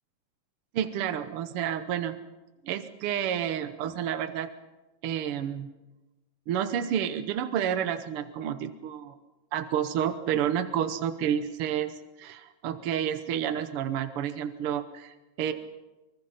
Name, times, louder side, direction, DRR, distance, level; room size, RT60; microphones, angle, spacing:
voice 1, 0.7-2.2 2.6-4.5 5.0-5.7 6.5-9.2 9.5-15.5, right 9 dB, 70° right, 9 dB, 1.3 m, -30 dB
25.0 x 24.0 x 5.7 m, 1.1 s
omnidirectional pair, 3.7 m